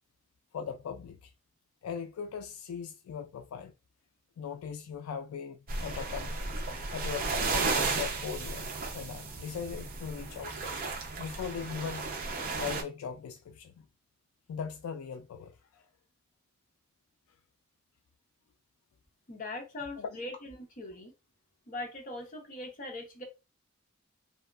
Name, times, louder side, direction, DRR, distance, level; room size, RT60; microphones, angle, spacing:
voice 1, 0.5-1.3 1.8-3.7 4.4-6.4 6.9-10.6 11.2-12.1 12.6-13.9 14.5-15.8 20.0-20.3, left 7 dB, 85° left, 0.3 m, -39 dB
sound 1, 5.7-12.8, right 3 dB, 45° right, 0.6 m, -34 dB
voice 2, 19.3-21.1 21.7-23.2, left 2 dB, 40° left, 0.7 m, -41 dB
2.7 x 2.2 x 2.3 m
head